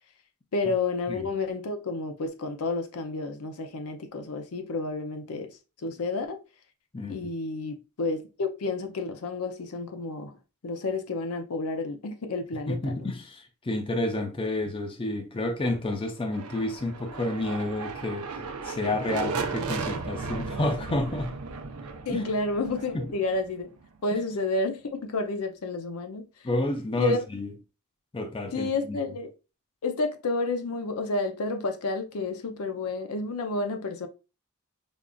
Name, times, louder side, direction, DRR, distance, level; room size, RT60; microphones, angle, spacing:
voice 1, 0.5-6.4 7.1-10.4 10.6-13.1 22.1-23.7 24.0-26.3 27.0-27.2 28.5-29.3 29.8-34.1, left 3 dB, 80° left, 0.5 m, -30 dB
voice 2, 12.7-18.3 18.6-21.4 22.1-22.3 22.9-23.1 24.1-24.2 26.4-27.5 28.1-29.0, left 2 dB, 25° left, 0.5 m, -30 dB
sound 1, 16.2-24.0, right 4 dB, 85° right, 0.6 m, -36 dB
5.2 x 2.4 x 2.3 m
head